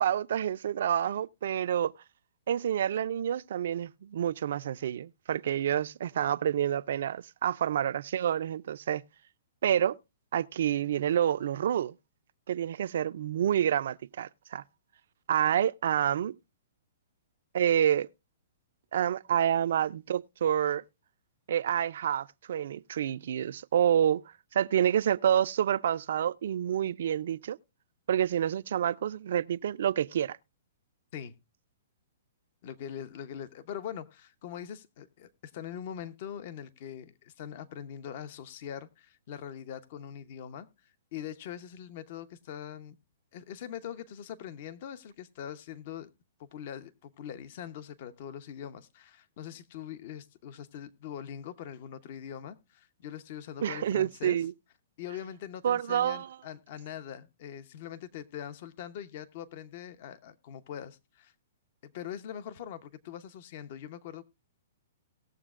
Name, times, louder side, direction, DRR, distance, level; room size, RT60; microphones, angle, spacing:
voice 1, 0.0-1.9 2.5-9.0 9.6-10.0 10.3-11.9 12.5-14.6 15.3-16.3 17.5-18.1 18.9-20.8 21.5-24.2 24.5-27.6 28.1-30.4 53.6-54.5 55.6-56.4, right 10 dB, 65° right, 0.4 m, -28 dB
voice 2, 32.6-40.7 41.1-42.9 43.3-46.1 46.4-54.4 55.0-61.3 61.8-64.2, left 9 dB, 50° left, 0.9 m, -42 dB
19.0 x 7.2 x 2.5 m
hypercardioid pair, 135°, 0 cm